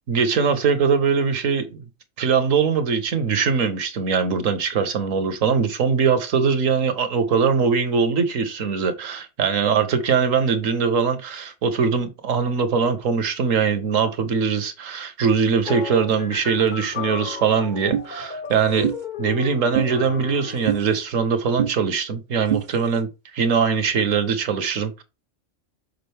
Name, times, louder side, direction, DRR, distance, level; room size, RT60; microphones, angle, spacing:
voice 1, 0.1-1.8 2.2-18.9 19.2-23.1 23.3-25.0, right 6 dB, 70° right, 1.4 m, -21 dB
sound 1, 15.6-20.9, left 5 dB, 40° left, 0.9 m, -34 dB
sound 2, 17.9-18.1 18.8-19.0 19.7-19.9 20.7-20.8 21.6-21.7 22.5-22.6, right 9 dB, 45° right, 0.6 m, -23 dB
6.7 x 4.9 x 3.4 m
omnidirectional pair, 1.4 m